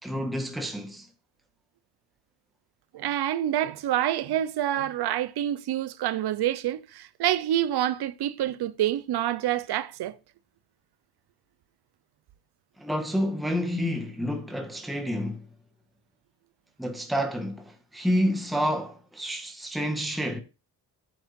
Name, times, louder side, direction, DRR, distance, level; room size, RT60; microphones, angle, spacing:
voice 1, 0.0-1.1 12.8-15.4 16.8-20.4, equal, ahead, 1.5 m, -29 dB
voice 2, 2.9-10.1, right 12 dB, 70° right, 0.8 m, -27 dB
10.5 x 8.5 x 2.6 m
cardioid pair, 65°, 40 cm